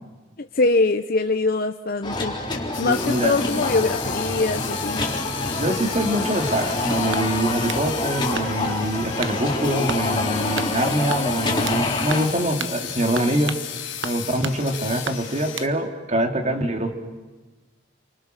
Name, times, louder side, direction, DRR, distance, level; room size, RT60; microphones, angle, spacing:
voice 1, 0.4-2.3 2.8-5.0, left 3 dB, 50° left, 6 dB, 0.8 m, -23 dB
sound 1, 2.0-12.3, left 2 dB, 25° left, 3.7 m, -27 dB
sound 2, 2.7-15.7, left 10 dB, 85° left, 2.7 m, -34 dB
voice 2, 2.8-3.4 5.6-13.5 14.0-16.9, right 1 dB, 35° right, 5 dB, 2.5 m, -24 dB
sound 3, 7.1-7.9 8.3-8.8 9.2-9.4 9.9-10.1 10.6-10.7 11.1-11.8 12.1-12.3 12.6-12.8 13.1-13.7 14.0-14.6 15.0-15.7, right 6 dB, 75° right, 1.2 m, -33 dB
29.5 x 24.0 x 6.6 m, 1.2 s
head